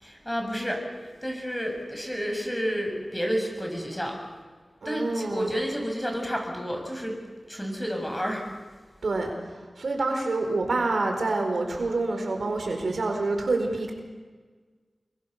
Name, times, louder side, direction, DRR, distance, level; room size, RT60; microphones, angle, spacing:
voice 1, 0.0-4.2 4.8-7.1 7.5-8.4, equal, 15° left, 2 dB, 7.5 m, -30 dB
voice 2, 4.8-5.5 9.0-13.9, right 3 dB, 85° right, 3 dB, 4.6 m, -27 dB
28.5 x 23.0 x 6.8 m, 1.4 s
wide cardioid pair, 60°, 0 cm